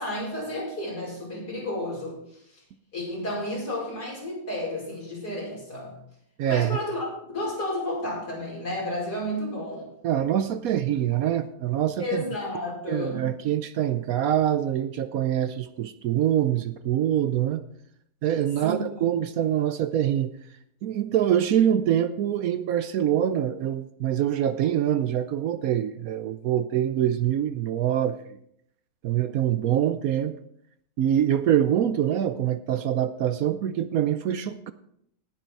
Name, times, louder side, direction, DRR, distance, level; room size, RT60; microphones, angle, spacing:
voice 1, 0.0-2.6 2.9-6.0 6.5-7.1 7.3-9.9 12.0-13.2 18.6-19.1, left 1 dB, 70° left, -4 dB, 5.8 m, -32 dB
voice 2, 6.4-6.8 10.0-12.2 12.9-17.6 18.2-20.3 20.8-28.2 29.0-30.3 31.0-34.7, right 10 dB, 70° right, 12 dB, 1.0 m, -24 dB
17.5 x 6.7 x 4.6 m, 0.73 s
omnidirectional pair, 1.8 m